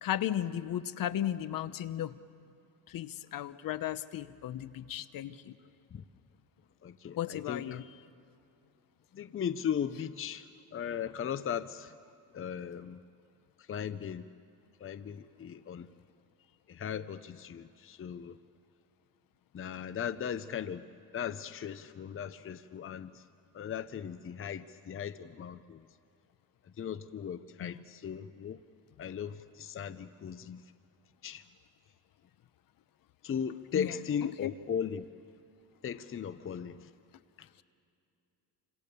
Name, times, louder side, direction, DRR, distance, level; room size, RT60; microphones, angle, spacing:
voice 1, 0.0-2.1 2.9-5.5 7.2-7.8 27.6-27.8 33.7-33.9 34.2-34.5, left 11 dB, 60° left, 1.0 m, -35 dB
voice 2, 6.8-7.8 9.1-11.9 12.3-13.0 13.7-14.3 14.8-15.9 16.7-18.4 19.5-20.8 21.1-23.2 23.5-25.9 26.8-28.6 29.0-30.6 31.2-31.4 33.2-35.0 35.8-36.9 37.4-37.5, left 8 dB, 35° left, 0.8 m, -37 dB
29.5 x 26.0 x 7.0 m
cardioid pair, 110°, 38 cm